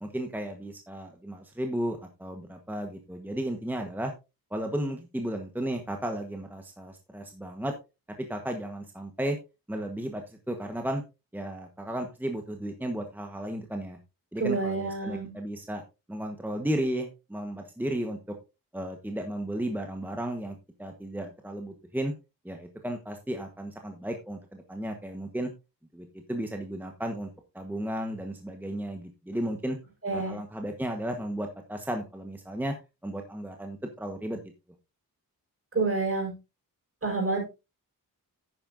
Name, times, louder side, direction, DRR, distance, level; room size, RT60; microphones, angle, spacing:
voice 1, 0.0-4.1 4.5-7.7 8.3-9.4 9.7-11.0 11.3-14.0 14.3-15.8 16.1-18.2 18.7-22.1 22.4-25.5 25.9-27.3 27.5-29.8 30.1-32.7 33.0-34.4, right 1 dB, 5° right, 4 dB, 1.2 m, -34 dB
voice 2, 14.4-15.3 30.0-30.4 35.7-36.3 37.0-37.4, right 3 dB, 40° right, 0 dB, 5.1 m, -28 dB
11.0 x 9.4 x 2.6 m, 0.26 s
wide cardioid pair, 150°, 36 cm